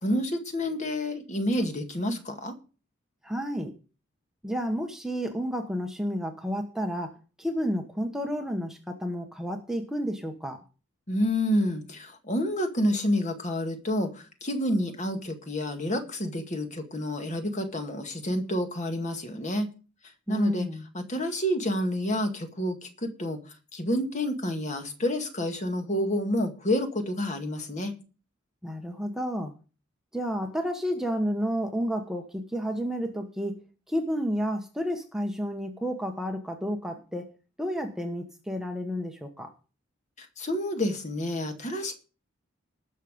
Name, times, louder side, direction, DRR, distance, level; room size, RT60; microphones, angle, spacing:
voice 1, 0.0-2.5 11.1-19.7 20.3-20.7 20.9-23.4 23.7-27.9 40.2-41.9, equal, 35° left, 2.0 m, -29 dB
voice 2, 3.2-3.7 4.4-10.6 20.3-20.8 28.6-29.5 30.1-33.6 33.9-37.3 37.6-39.5, equal, ahead, 1.2 m, -31 dB
19.5 x 6.6 x 5.2 m
head